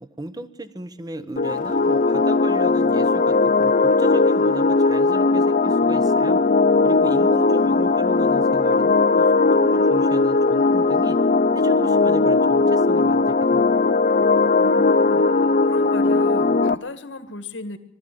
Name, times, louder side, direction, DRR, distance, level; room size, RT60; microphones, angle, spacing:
voice 1, 0.0-6.4 6.8-11.2 11.5-13.8, right 1 dB, 20° right, 13 dB, 1.1 m, -35 dB
sound 1, 1.4-16.7, left 3 dB, 45° left, 0.7 m, -18 dB
voice 2, 7.3-7.8 14.6-15.2 15.6-17.8, left 2 dB, 75° left, 9 dB, 1.9 m, -36 dB
21.0 x 13.5 x 9.2 m, 0.82 s
head